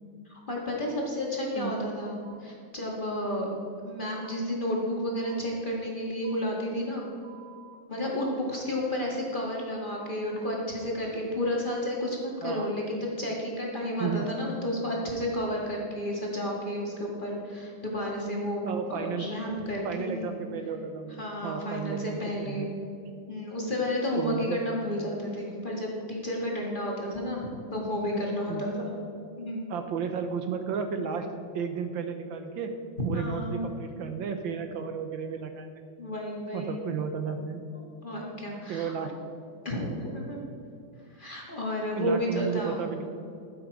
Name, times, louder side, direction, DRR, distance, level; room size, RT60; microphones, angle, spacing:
voice 1, 0.2-3.5 3.8-7.0 7.9-18.6 18.9-20.3 21.2-22.7 23.3-28.9 29.4-29.7 33.1-33.7 36.0-36.9 37.7-38.9 39.6-40.4 41.1-42.9, left 1 dB, 25° left, -3 dB, 1.7 m, -31 dB
voice 2, 1.6-1.9 12.4-12.7 14.0-14.3 18.6-19.3 19.8-22.7 24.1-24.6 28.5-28.6 29.7-32.7 33.0-35.7 36.5-37.6 38.7-39.1 42.0-43.0, right 6 dB, 70° right, 7 dB, 1.4 m, -33 dB
sound 1, 2.2-2.4 3.2-3.4 4.2-4.4 5.2-5.4 6.2-6.4 7.2-7.8, right 10 dB, 55° right, 0.7 m, -51 dB
14.0 x 7.5 x 4.8 m, 2.5 s
omnidirectional pair, 2.3 m